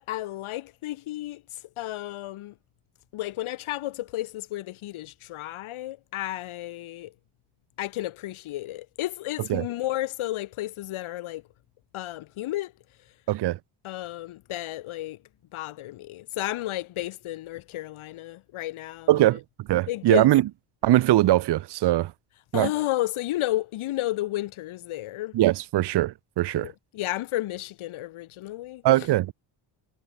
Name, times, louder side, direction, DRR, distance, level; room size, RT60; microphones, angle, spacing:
voice 1, 0.0-1.4 1.8-2.5 3.1-7.1 7.8-11.4 11.9-12.7 13.8-15.2 15.5-19.3 19.9-20.3 22.5-25.4 26.5-28.8, left 15 dB, 80° left, 5.7 m, -32 dB
voice 2, 19.1-20.4 20.8-22.1 22.5-22.7 25.3-26.7 28.8-29.3, right 15 dB, 55° right, 0.9 m, -21 dB
cardioid pair, 140°, 48 cm